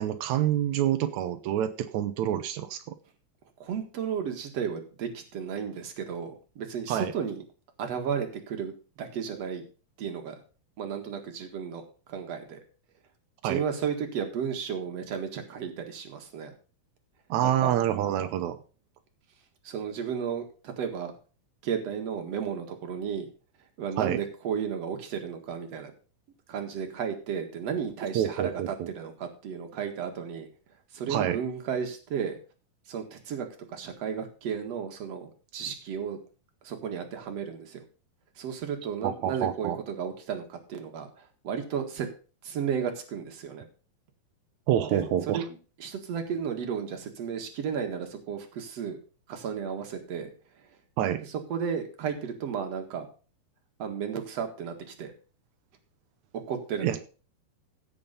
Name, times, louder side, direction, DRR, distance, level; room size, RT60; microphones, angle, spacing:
voice 1, 0.0-2.8 6.9-7.1 13.4-13.6 17.3-18.6 24.0-24.2 28.1-28.9 31.1-31.4 39.0-39.8 44.7-45.4 51.0-51.2 56.8-57.0, right 11 dB, 85° right, 9 dB, 1.6 m, -27 dB
voice 2, 3.6-7.4 7.8-8.7 9.0-9.6 10.0-10.4 10.8-11.8 12.1-12.6 13.4-16.5 17.4-17.7 19.6-21.1 21.6-23.3 23.8-25.9 26.5-30.5 30.9-32.4 32.9-36.2 36.6-37.8 38.4-42.1 42.4-43.6 44.9-49.0 49.3-50.3 51.3-53.1 53.8-55.1 56.5-57.0, right 7 dB, 50° right, 5 dB, 2.4 m, -33 dB
16.0 x 5.5 x 5.4 m, 0.37 s
omnidirectional pair, 4.3 m